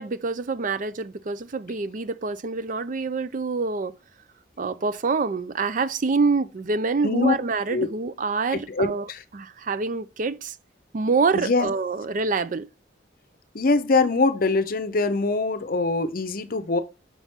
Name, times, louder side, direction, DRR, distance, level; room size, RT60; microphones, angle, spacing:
voice 1, 0.0-3.9 4.6-9.1 9.3-10.5 10.9-12.7, right 4 dB, 45° right, 0.5 m, -26 dB
voice 2, 7.0-7.3 7.7-7.9 8.5-9.2 11.3-11.7 13.5-16.8, left 3 dB, 50° left, 0.7 m, -23 dB
6.0 x 5.6 x 3.6 m
head